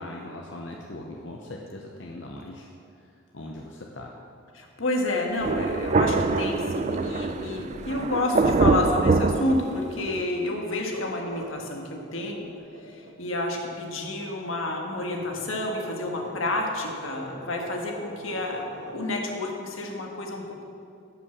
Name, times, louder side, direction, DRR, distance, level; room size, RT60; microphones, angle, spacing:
voice 1, 0.0-2.7 3.0-4.1, left 1 dB, 65° left, 0 dB, 0.8 m, -40 dB
voice 2, 4.5-12.5 12.9-18.6 18.9-20.6, left 2 dB, 90° left, 1 dB, 1.6 m, -29 dB
Thunder, 5.4-10.2, right 3 dB, 35° right, 0.3 m, -24 dB
sound 1, 10.8-19.0, right 1 dB, 75° right, 1.4 m, -44 dB
10.5 x 5.8 x 7.2 m, 2.5 s
head